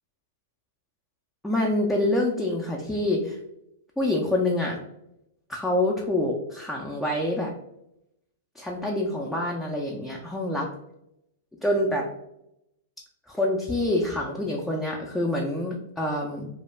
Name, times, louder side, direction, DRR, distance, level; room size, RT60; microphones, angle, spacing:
voice 1, 1.4-3.4 4.0-4.8 5.5-7.5 8.6-10.7 11.6-12.1 13.3-16.5, left 1 dB, 5° left, -3 dB, 0.4 m, -26 dB
2.2 x 2.1 x 3.1 m, 0.83 s
hypercardioid pair, 115°, 0 cm